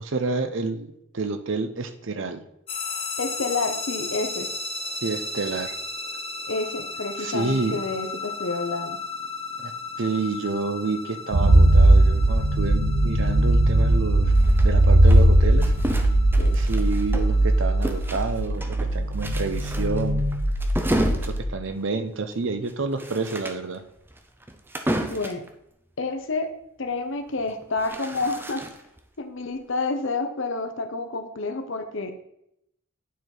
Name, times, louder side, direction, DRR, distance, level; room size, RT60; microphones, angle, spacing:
voice 1, 0.0-2.4 5.0-5.8 7.2-7.8 9.6-9.7 10.0-14.3 14.6-15.7 16.5-20.2 21.1-23.8, right 3 dB, 55° right, 9 dB, 0.7 m, -29 dB
sound 1, 2.7-18.1, left 3 dB, 25° left, 0.8 m, -36 dB
voice 2, 3.2-4.5 6.5-9.0 16.4-16.6 24.9-25.4 26.0-26.5 26.8-28.6 29.2-32.1, left 3 dB, 55° left, 7 dB, 0.8 m, -29 dB
sound 2, 11.3-21.4, right 1 dB, 85° right, 0.9 m, -19 dB
sound 3, 14.3-17.5 17.8-25.5 27.4-29.0, right 1 dB, 10° right, 0.5 m, -32 dB
9.4 x 4.5 x 3.9 m, 0.77 s
head